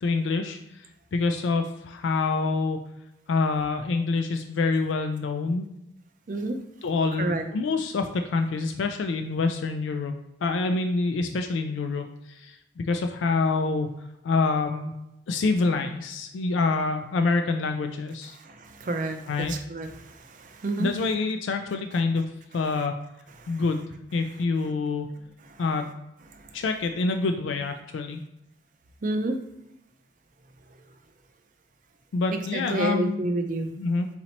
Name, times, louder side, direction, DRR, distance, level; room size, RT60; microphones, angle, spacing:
voice 1, 0.0-2.8 3.3-5.7 6.8-10.1 10.4-13.9 14.2-14.9 15.3-18.4 19.3-19.5 20.8-22.2 22.5-22.9 23.5-25.1 25.6-25.9 26.5-28.2 32.1-33.3 33.8-34.1, left 3 dB, 75° left, 6 dB, 0.3 m, -26 dB
voice 2, 18.4-20.9 23.4-23.6 29.0-29.4 32.5-33.7, right 2 dB, 40° right, 6 dB, 0.4 m, -29 dB
4.2 x 4.0 x 2.9 m, 0.88 s
head